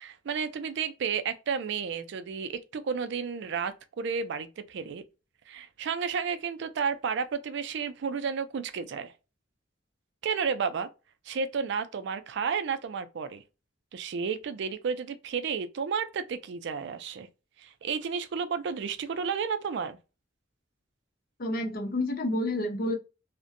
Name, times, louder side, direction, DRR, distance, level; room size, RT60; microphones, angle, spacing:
voice 1, 0.0-5.0 5.5-9.1 10.2-10.9 11.3-13.4 13.9-17.3 17.6-20.0, right 6 dB, 65° right, 0.4 m, -32 dB
voice 2, 21.4-23.0, left 1 dB, 50° left, 0.7 m, -29 dB
2.5 x 2.1 x 2.5 m
head